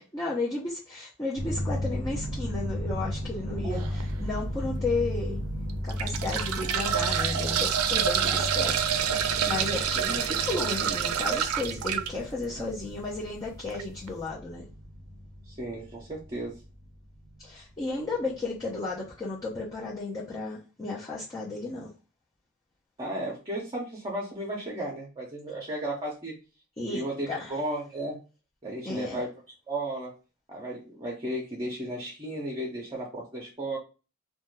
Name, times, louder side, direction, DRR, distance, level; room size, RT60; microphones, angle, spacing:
voice 1, 0.1-5.4 5.8-8.8 9.0-14.6 17.4-21.9 26.8-27.5 28.8-29.2, left 3 dB, 15° left, 0.6 m, -33 dB
sound 1, 1.4-17.4, equal, 80° left, 0.8 m, -35 dB
voice 2, 3.5-3.9 15.5-16.6 23.0-26.3 26.9-28.2 28.6-29.3 29.7-30.1 30.5-33.8, right 1 dB, 25° right, 0.7 m, -34 dB
sound 2, 3.8-4.0 4.7-4.8 5.7-12.1 13.7-13.8 14.1-14.2, right 8 dB, 90° right, 0.4 m, -27 dB
2.6 x 2.2 x 3.1 m
head